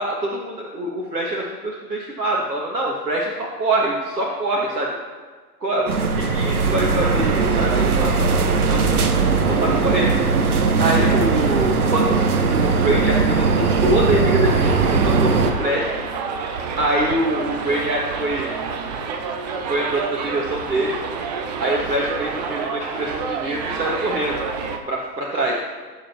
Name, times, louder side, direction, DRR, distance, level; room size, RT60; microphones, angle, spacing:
voice 1, 0.0-5.0 5.6-5.9 6.2-8.8 9.5-10.1 10.8-12.1 12.5-15.9 16.8-18.5 19.7-21.0 21.6-24.4 24.9-25.6, right 1 dB, 85° right, -3 dB, 1.9 m, -24 dB
sound 1, 5.9-15.5, right 4 dB, 60° right, 1.3 m, -19 dB
Subway metro underground, 14.5-24.8, right 5 dB, 25° right, 0.8 m, -28 dB
18.0 x 7.6 x 3.1 m, 1.4 s
figure-of-eight pair, 130°, 49 cm